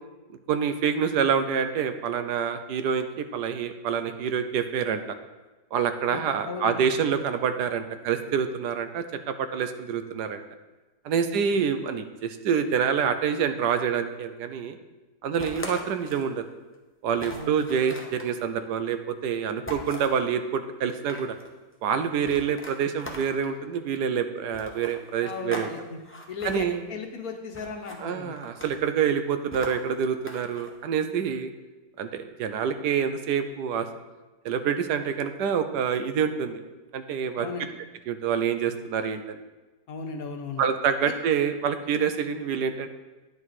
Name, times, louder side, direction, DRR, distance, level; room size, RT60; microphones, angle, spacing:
voice 1, 0.5-5.0 5.7-10.4 11.0-14.8 15.2-16.4 17.0-21.4 21.8-25.7 26.4-26.8 28.0-31.5 32.0-33.9 34.4-36.6 36.9-37.5 38.1-39.4 40.6-42.9, right 7 dB, 80° right, 9 dB, 1.2 m, -27 dB
voice 2, 6.1-6.8 17.3-17.6 25.2-26.0 26.3-28.4 37.4-37.7 39.9-40.7, left 5 dB, 65° left, 4 dB, 1.3 m, -36 dB
sound 1, 15.4-16.3 16.7-16.8 17.2-18.3 19.7-20.2 20.8-21.5 22.2-23.6 24.5-25.7 26.0-26.6 27.5-28.0 28.4-28.9 29.5-30.7, equal, 10° left, 0.7 m, -40 dB
9.7 x 6.9 x 4.1 m, 1.2 s
omnidirectional pair, 1.8 m